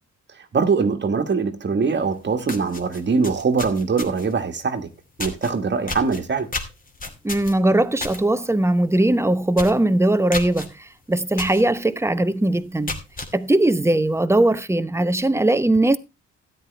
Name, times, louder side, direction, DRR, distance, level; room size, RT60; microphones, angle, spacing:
voice 1, 0.5-4.9 5.2-6.5, right 5 dB, 35° right, 1.6 m, -22 dB
sound 1, 2.0-2.1 2.4-4.4 5.2-5.5 5.9-8.2 8.6-8.8 9.1-9.2 9.5-9.8 10.3-10.7 11.4-11.6 12.1-12.2 12.7-13.3, left 3 dB, 30° left, 2.6 m, -32 dB
voice 2, 7.2-13.0 13.3-16.0, right 1 dB, 10° right, 0.8 m, -20 dB
13.0 x 10.0 x 3.4 m
cardioid pair, 90°, 30 cm